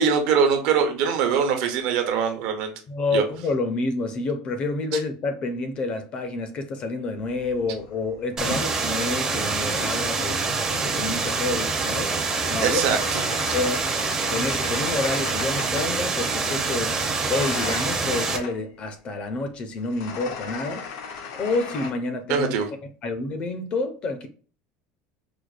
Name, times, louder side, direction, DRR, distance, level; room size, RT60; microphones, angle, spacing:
voice 1, 0.0-2.7 3.1-3.2 12.6-13.2 22.3-22.7, right 6 dB, 65° right, 0.8 m, -22 dB
voice 2, 2.9-12.2 12.5-12.8 13.5-13.8 14.3-17.0 17.3-20.9 21.3-22.5 23.0-24.3, left 3 dB, 30° left, 0.5 m, -28 dB
sound 1, 7.1-9.3 10.5-16.0 17.2-18.7 19.8-21.9, left 6 dB, 80° left, 0.6 m, -38 dB
sound 2, 8.4-18.4, right 4 dB, 15° right, 0.5 m, -26 dB
4.8 x 2.1 x 2.3 m
cardioid pair, 165°, 3 cm